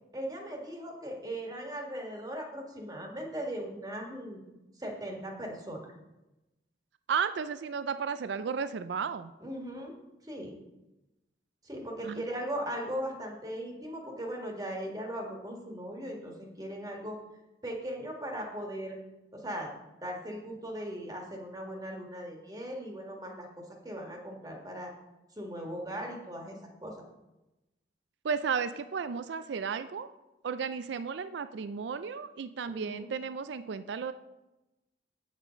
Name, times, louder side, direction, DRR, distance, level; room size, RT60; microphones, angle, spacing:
voice 1, 0.1-5.9 9.4-9.9 10.2-10.6 11.6-17.2 17.6-19.0 19.3-19.7 20.0-23.5 23.8-24.9 25.4-27.0 32.7-33.1, equal, 20° right, 1 dB, 1.6 m, -38 dB
voice 2, 7.1-9.3 12.0-12.3 28.2-30.1 30.4-34.1, right 6 dB, 70° right, 12 dB, 0.4 m, -33 dB
8.5 x 7.3 x 5.1 m, 0.98 s
head